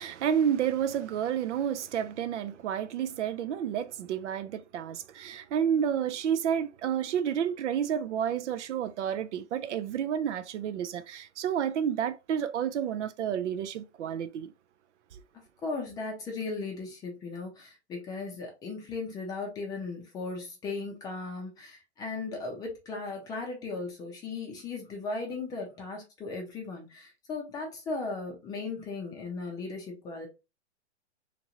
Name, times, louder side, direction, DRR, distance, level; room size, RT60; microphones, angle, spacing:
voice 1, 0.0-14.5 15.1-15.2, right 8 dB, 85° right, 0.5 m, -30 dB
voice 2, 15.6-30.3, left 3 dB, 10° left, 0.5 m, -37 dB
2.9 x 2.5 x 2.9 m
hypercardioid pair, 150°, 34 cm